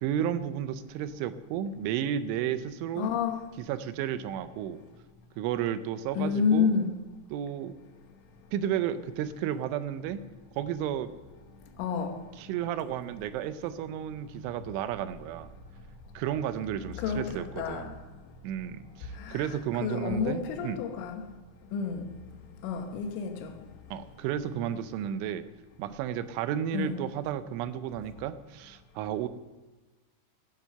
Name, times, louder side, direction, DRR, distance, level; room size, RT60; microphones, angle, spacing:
voice 1, 0.0-3.1 3.6-4.8 5.4-6.7 7.3-7.7 8.5-10.2 10.6-11.1 12.4-15.5 16.2-18.0 18.4-20.8 23.9-25.4 25.8-29.3, right 10 dB, 85° right, 3.1 m, -32 dB
voice 2, 3.0-3.5 6.2-6.9 11.8-12.2 17.0-17.9 19.2-21.2 21.7-22.1 22.6-23.5 26.7-27.0, left 6 dB, 90° left, 3.7 m, -30 dB
16.5 x 7.5 x 6.7 m
omnidirectional pair, 5.5 m